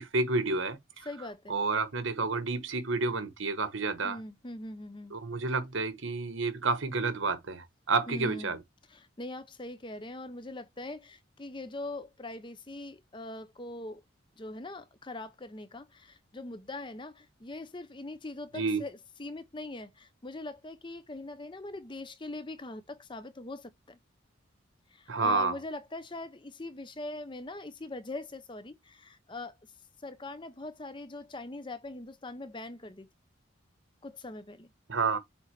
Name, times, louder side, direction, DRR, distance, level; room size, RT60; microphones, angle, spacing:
voice 1, 0.0-1.1 1.5-4.2 5.1-8.6 18.5-18.8 25.1-25.6 34.9-35.2, right 3 dB, 75° right, 1.2 m, -30 dB
voice 2, 1.1-1.6 4.0-5.2 8.1-8.6 8.9-14.0 14.4-24.0 24.9-29.5 30.0-33.1 34.0-34.7, left 2 dB, 25° left, 0.6 m, -42 dB
7.8 x 3.9 x 3.2 m
head